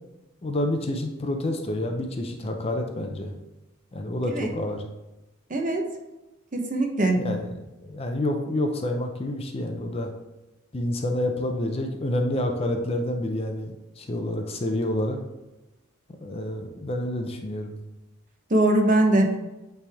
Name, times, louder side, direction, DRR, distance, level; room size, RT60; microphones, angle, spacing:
voice 1, 0.4-3.3 3.9-4.8 7.1-10.1 10.7-15.2 16.2-17.8, left 1 dB, 25° left, 4 dB, 0.5 m, -28 dB
voice 2, 5.5-5.8 6.5-7.2 18.5-19.4, right 1 dB, 35° right, 1 dB, 0.9 m, -21 dB
8.4 x 3.4 x 3.5 m, 1.0 s
head